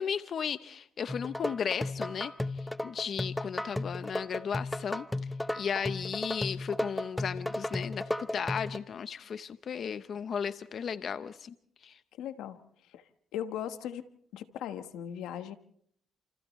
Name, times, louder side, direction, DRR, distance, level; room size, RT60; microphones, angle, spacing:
voice 1, 0.0-5.1 5.5-11.5 11.8-12.0, left 7 dB, 55° left, 11 dB, 0.8 m, -35 dB
sound 1, 1.1-8.8, left 1 dB, 10° left, 0.9 m, -34 dB
voice 2, 12.2-12.6 12.9-13.0 13.3-14.1 14.3-15.6, left 10 dB, 90° left, 9 dB, 1.3 m, -38 dB
29.5 x 28.0 x 3.2 m, 0.66 s
cardioid pair, 90°, 0 cm